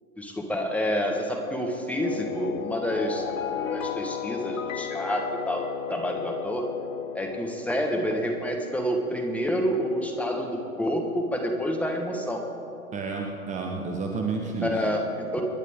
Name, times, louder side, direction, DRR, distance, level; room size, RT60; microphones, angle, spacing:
voice 1, 0.2-3.3 3.7-5.6 5.9-6.7 7.1-12.4 14.6-15.4, equal, 5° left, 1 dB, 1.2 m, -28 dB
Wind instrument woodwind instrument, 2.0-7.7, left 9 dB, 25° left, 0.6 m, -35 dB
sound 1, 2.4-6.3, left 8 dB, 60° left, 1.1 m, -37 dB
voice 2, 12.9-14.9, right 4 dB, 15° right, 2 dB, 1.0 m, -30 dB
27.5 x 10.5 x 3.6 m, 2.9 s
figure-of-eight pair, 120°, 45 cm